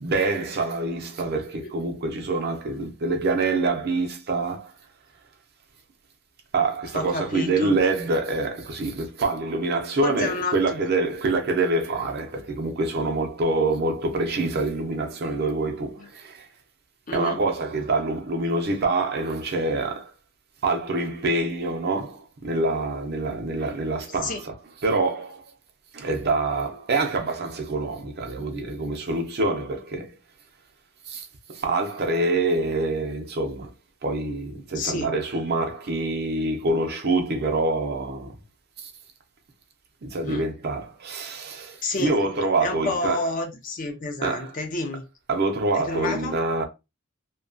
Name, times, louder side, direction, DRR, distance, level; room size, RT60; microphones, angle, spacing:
voice 1, 0.0-4.7 6.5-16.5 17.1-20.1 20.6-25.4 25.9-30.1 31.1-33.7 34.0-38.4 38.8-38.9 40.0-43.3 44.2-44.6 45.3-46.7, right 2 dB, 50° right, 0.6 m, -26 dB
voice 2, 6.9-7.8 10.0-10.8 16.0-16.1 17.1-17.4 24.2-24.4 34.7-35.1 40.3-40.4 41.8-42.2 42.6-45.0 45.7-46.4, left 2 dB, 40° left, 0.5 m, -29 dB
2.7 x 2.2 x 2.5 m
head